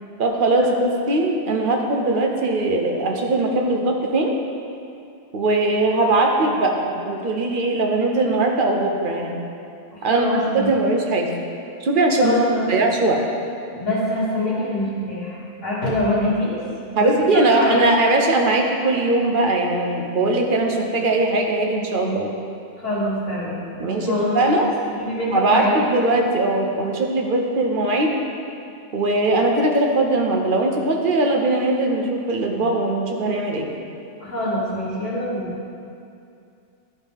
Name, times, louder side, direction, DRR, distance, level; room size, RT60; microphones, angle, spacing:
voice 1, 0.2-4.3 5.3-9.4 10.0-10.3 10.5-11.3 11.8-12.4 12.7-13.2 17.0-22.3 23.8-24.7 25.3-28.2 28.9-33.7, right 2 dB, 50° right, 1 dB, 0.8 m, -20 dB
voice 2, 9.9-10.8 12.2-12.7 13.7-16.6 16.9-17.9 22.8-24.6 24.9-25.8 34.2-35.6, left 1 dB, 85° left, -13 dB, 1.9 m, -25 dB
11.5 x 4.2 x 3.5 m, 2.5 s
omnidirectional pair, 1.2 m